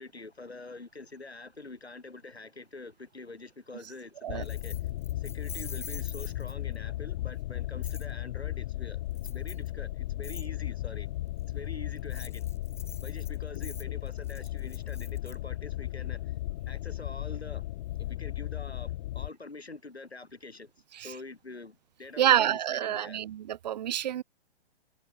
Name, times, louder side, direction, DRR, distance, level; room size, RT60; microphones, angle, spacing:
voice 1, 0.0-4.8 5.2-9.0 9.3-11.1 11.5-12.5 13.0-16.4 16.7-17.7 18.0-23.2, left 3 dB, 80° left, 5.1 m, -45 dB
sound 1, 4.3-19.3, left 15 dB, 35° left, 2.2 m, -35 dB
Keys jangling, 4.4-6.8 7.8-8.1 9.1-9.7 10.2-10.5 12.0-15.3, left 5 dB, 10° left, 5.1 m, -46 dB
voice 2, 22.2-24.2, right 11 dB, 40° right, 1.0 m, -27 dB
figure-of-eight pair, 125°, 31 cm